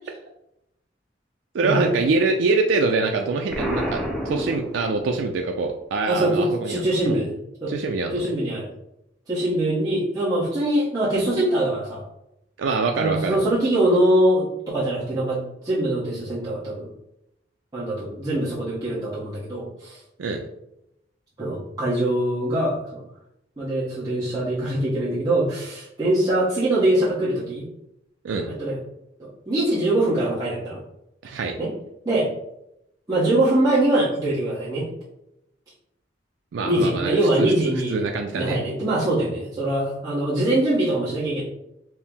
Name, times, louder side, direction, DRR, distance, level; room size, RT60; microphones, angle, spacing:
voice 1, 1.5-7.2 7.7-8.2 12.6-13.4 20.2-20.4 28.2-28.5 31.2-31.6 36.5-38.6, right 3 dB, 90° right, 3 dB, 0.4 m, -24 dB
Explosion, 3.5-5.3, equal, ahead, 0.5 m, -29 dB
voice 2, 6.1-7.3 7.6-7.7 8.1-8.7 9.3-12.0 13.0-16.9 17.7-20.0 21.4-23.0 23.6-27.7 28.4-28.8 29.2-30.8 31.6-31.7 32.0-32.3 33.1-34.9 36.6-38.0 38.3-41.4, right 1 dB, 20° right, -10 dB, 0.9 m, -23 dB
4.4 x 2.0 x 3.5 m, 0.84 s
head